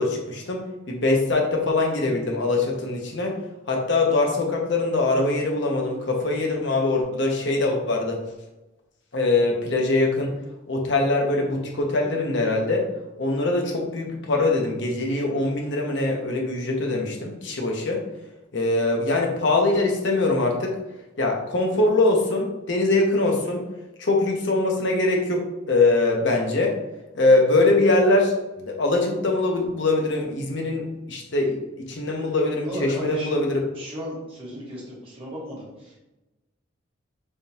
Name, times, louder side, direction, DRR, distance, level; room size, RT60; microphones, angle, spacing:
voice 1, 0.0-3.4 3.7-8.2 9.1-10.4 10.7-12.9 13.2-18.0 18.5-20.8 21.2-23.6 24.0-26.8 27.1-33.6, left 2 dB, 65° left, 1 dB, 0.8 m, -23 dB
voice 2, 32.6-33.4 33.8-35.9, equal, 30° right, -6 dB, 1.4 m, -34 dB
3.5 x 3.5 x 2.8 m, 1.0 s
head